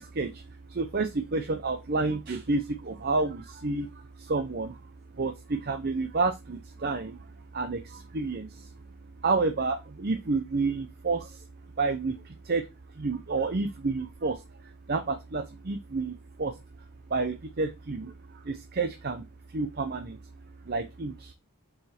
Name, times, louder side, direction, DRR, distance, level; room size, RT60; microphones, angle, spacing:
voice 1, 0.8-2.6 2.9-3.9 4.3-4.7 5.2-5.3 5.7-7.1 7.5-7.8 8.1-8.5 9.2-11.2 11.8-12.1 12.5-12.6 13.0-14.3 14.9-16.1 16.4-16.5 17.1-18.1 18.8-19.2 19.5-20.1 20.7-21.1, right 3 dB, 45° right, 7 dB, 0.7 m, -29 dB
6.3 x 4.7 x 4.3 m, 0.24 s
head